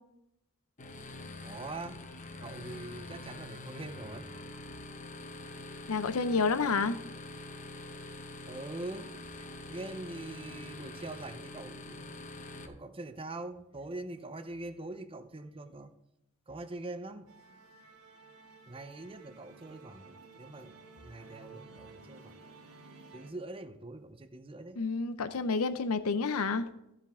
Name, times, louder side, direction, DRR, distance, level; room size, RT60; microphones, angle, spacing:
sound 1, 0.8-12.7, left 2 dB, 35° left, 0.9 m, -45 dB
voice 1, 1.4-2.0 2.4-4.3 8.5-12.2 12.6-15.9 16.5-17.3 18.7-20.7 21.0-22.3 23.1-24.8, right 2 dB, 25° right, 9 dB, 0.7 m, -43 dB
voice 2, 5.9-7.0 24.8-26.7, left 4 dB, 80° left, 12 dB, 0.6 m, -29 dB
Musical instrument, 17.3-23.3, right 3 dB, 80° right, 2.1 m, -54 dB
15.0 x 7.3 x 3.7 m, 0.85 s
head